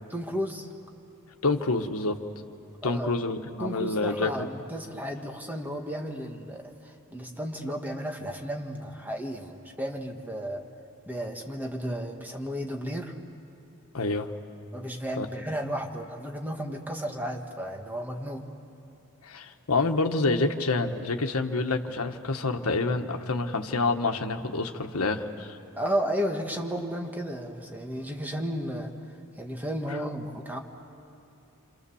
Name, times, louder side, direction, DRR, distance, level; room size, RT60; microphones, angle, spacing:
voice 1, 0.1-0.7 2.8-3.1 3.6-10.6 11.1-13.1 14.7-18.5 25.8-28.9 29.4-30.6, equal, 10° right, 2 dB, 1.7 m, -33 dB
voice 2, 1.4-2.2 2.8-4.5 13.9-14.3 15.2-15.3 19.2-25.6, left 3 dB, 85° left, 5 dB, 1.4 m, -27 dB
28.5 x 26.5 x 7.1 m, 3.0 s
head